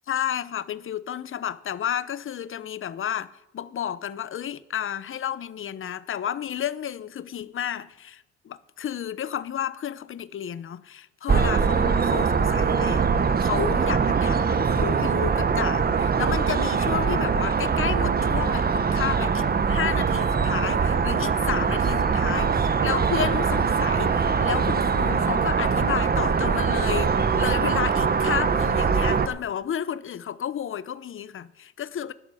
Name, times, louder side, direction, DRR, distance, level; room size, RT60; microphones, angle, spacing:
voice 1, 0.1-13.1 13.4-32.1, left 9 dB, 45° left, 0.7 m, -32 dB
sound 1, 11.3-29.3, right 5 dB, 30° right, 0.9 m, -22 dB
11.5 x 11.5 x 4.9 m
cardioid pair, 90°, 30 cm